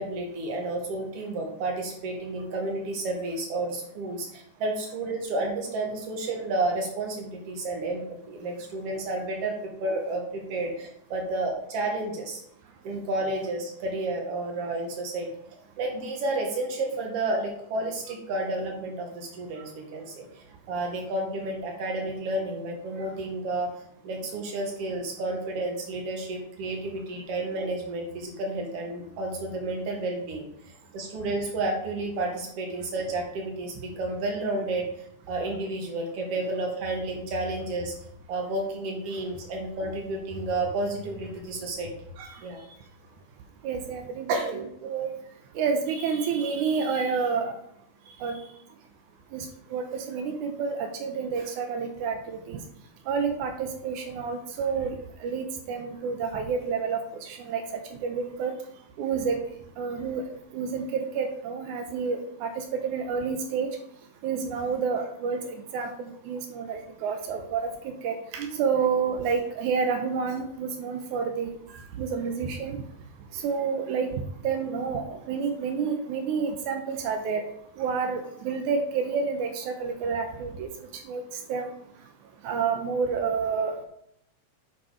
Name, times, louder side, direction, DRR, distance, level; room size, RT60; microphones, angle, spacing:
voice 1, 0.0-12.4 12.8-23.7 24.0-30.5 30.9-34.9 35.3-37.9 38.3-41.9 42.4-42.6 44.3-44.6, right 2 dB, 55° right, 1 dB, 2.7 m, -31 dB
voice 2, 43.6-45.1 45.6-47.5 48.2-48.4 49.3-52.6 53.1-58.5 59.0-59.4 59.8-60.2 60.5-63.7 64.2-71.6 71.9-72.8 73.3-74.1 74.4-77.4 77.8-80.7 81.1-81.2 81.5-81.7 82.4-83.9, right 5 dB, 90° right, 5 dB, 2.4 m, -29 dB
8.4 x 5.4 x 5.0 m, 0.74 s
omnidirectional pair, 3.4 m